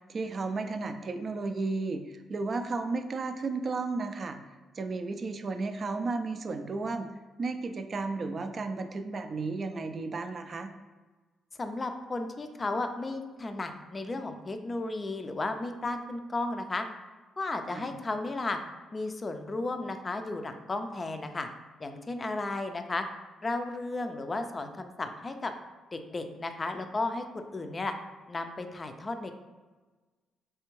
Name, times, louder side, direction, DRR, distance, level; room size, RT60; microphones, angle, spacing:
voice 1, 0.1-4.4 4.8-7.1 7.4-10.7 17.7-17.9, right 3 dB, 45° right, 7 dB, 0.3 m, -33 dB
voice 2, 11.6-16.9 17.4-18.6 18.9-21.5 21.8-23.0 23.4-25.5 25.9-27.9 28.3-29.3, left 2 dB, 30° left, 7 dB, 0.4 m, -34 dB
3.4 x 3.3 x 3.1 m, 1.3 s
cardioid pair, 90°, 0 cm